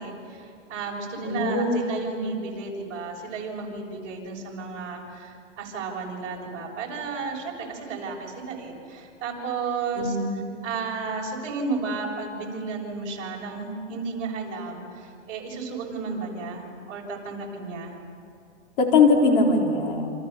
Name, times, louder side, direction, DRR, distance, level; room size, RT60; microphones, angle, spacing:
voice 1, 0.0-10.2 10.6-18.0, right 4 dB, 30° right, -2 dB, 6.8 m, -33 dB
voice 2, 1.2-1.8 10.0-10.3 18.8-20.1, left 3 dB, 45° left, 1 dB, 4.2 m, -21 dB
28.5 x 27.5 x 7.1 m, 2.4 s
hypercardioid pair, 150°, 37 cm